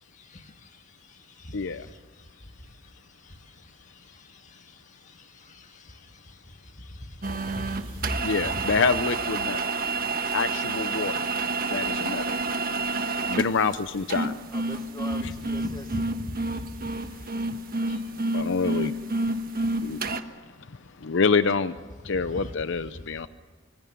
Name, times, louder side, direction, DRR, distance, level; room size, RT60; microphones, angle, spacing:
voice 1, 1.5-1.9 8.2-9.7 10.3-11.3 11.7-12.3 13.3-14.3 15.2-15.3 18.3-18.9 19.8-20.0 21.0-21.7 22.0-23.3, left 4 dB, 60° left, 12 dB, 0.7 m, -26 dB
voice 2, 5.4-5.8 6.9-7.0 7.3-8.6 15.9-16.5 17.9-18.0 22.4-22.5, equal, 35° left, 5 dB, 2.0 m, -37 dB
sound 1, 7.2-20.2, right 3 dB, 45° right, 1.4 m, -29 dB
voice 3, 14.5-16.1, left 2 dB, 20° left, 7 dB, 1.0 m, -42 dB
25.5 x 25.0 x 7.0 m, 1.5 s
head